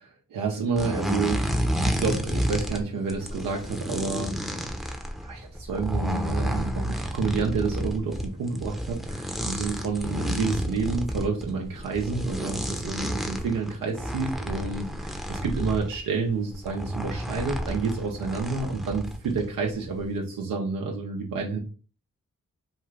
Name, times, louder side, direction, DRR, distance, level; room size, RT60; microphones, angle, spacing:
voice 1, 0.0-4.4 5.2-21.6, right 4 dB, 90° right, 0 dB, 0.5 m, -29 dB
sound 1, 0.8-2.8 3.1-16.0 16.5-19.5 19.7-20.0, equal, ahead, 0.6 m, -31 dB
2.4 x 2.4 x 3.1 m, 0.36 s
cardioid pair, 40°, 33 cm